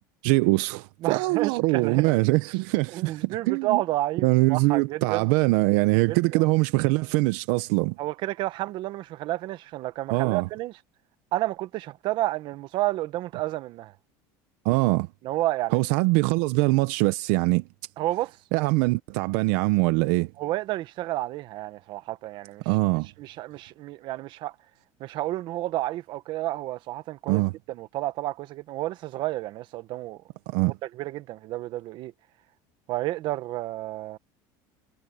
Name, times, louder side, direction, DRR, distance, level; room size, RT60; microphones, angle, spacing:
voice 1, 0.2-3.8 4.2-8.0 10.1-10.5 14.6-15.1 15.7-17.6 18.5-20.3 22.7-23.1 27.3-27.5 30.5-30.7, right 23 dB, 75° right, 0.8 m, -23 dB
voice 2, 1.0-2.2 2.9-5.3 6.1-6.4 8.0-10.7 11.3-13.9 15.2-15.8 18.0-18.4 20.4-22.6 23.2-24.5 25.0-27.4 27.7-30.2 30.9-32.1 32.9-34.2, right 16 dB, 55° right, 1.2 m, -30 dB
supercardioid pair, 130°, 10 cm